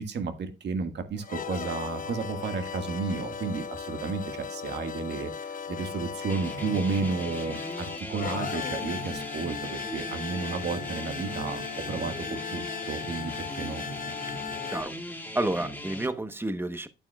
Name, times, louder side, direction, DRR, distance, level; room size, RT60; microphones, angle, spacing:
voice 1, 0.0-13.8, right 4 dB, 60° right, 1.7 m, -32 dB
sound 1, 1.2-14.8, left 6 dB, 45° left, 0.9 m, -37 dB
sound 2, 6.3-16.1, equal, 10° left, 1.8 m, -39 dB
voice 2, 15.3-16.9, right 1 dB, 10° right, 1.0 m, -30 dB
8.9 x 8.8 x 2.3 m
cardioid pair, 90°, 20 cm